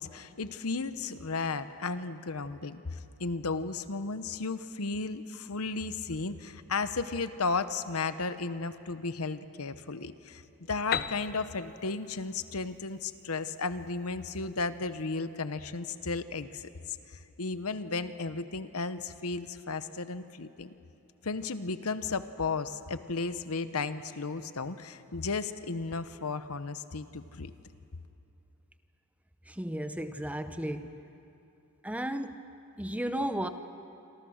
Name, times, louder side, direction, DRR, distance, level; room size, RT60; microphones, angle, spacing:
voice 1, 0.0-10.4 10.7-20.7 21.2-27.5, left 4 dB, 80° left, 11 dB, 1.0 m, -34 dB
Piano, 10.9-14.6, left 8 dB, 45° left, 0.6 m, -38 dB
voice 2, 29.5-30.9 31.8-32.3 32.8-33.5, right 1 dB, 5° right, 9 dB, 0.8 m, -33 dB
27.5 x 26.0 x 6.5 m, 2.8 s
head